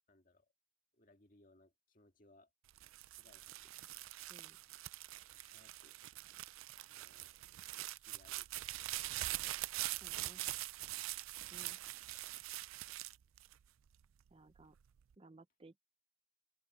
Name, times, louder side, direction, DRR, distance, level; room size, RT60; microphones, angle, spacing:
voice 1, 0.1-0.5 0.9-2.5 3.1-3.8 4.3-4.6 5.3-6.0 6.9-7.4 8.0-8.5 8.9-9.1 9.4-10.0 10.3-10.5, left 2 dB, 40° left, 2.2 m, -68 dB
sound 1, 2.7-14.0 14.6-15.1, right 17 dB, 85° right, 0.4 m, -44 dB
voice 2, 10.0-10.4 11.5-11.8 14.3-14.8 15.2-15.8, right 2 dB, 25° right, 0.6 m, -59 dB
open air
head